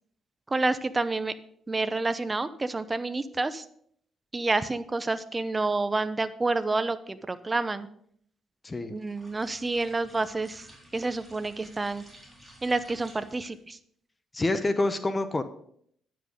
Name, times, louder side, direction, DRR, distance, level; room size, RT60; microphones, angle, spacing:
voice 1, 0.5-1.3 1.7-3.6 4.3-7.9 8.9-10.7 10.9-12.0 12.6-13.8, right 3 dB, 20° right, 12 dB, 0.8 m, -29 dB
sound 1, 9.0-13.6, equal, 5° right, 3.7 m, -53 dB
voice 2, 14.3-15.4, left 2 dB, 25° left, 10 dB, 0.8 m, -27 dB
10.0 x 7.8 x 5.2 m, 0.66 s
cardioid pair, 90°, 0 cm